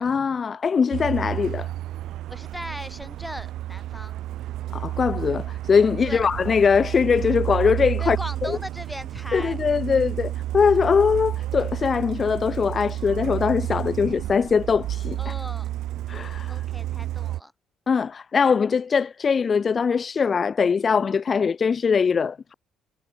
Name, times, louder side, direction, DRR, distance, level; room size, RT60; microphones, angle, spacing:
voice 1, 0.0-1.7 4.7-8.2 8.4-8.6 9.3-15.3 16.1-16.6 17.9-22.5, left 6 dB, 45° left, 0.7 m, -22 dB
Truck, 0.9-17.4, right 14 dB, 70° right, 0.8 m, -31 dB
voice 2, 2.3-4.1 6.0-6.3 8.0-9.6 15.2-15.7 16.5-17.5, equal, 5° left, 5.4 m, -38 dB
hypercardioid pair, 60°, 0 cm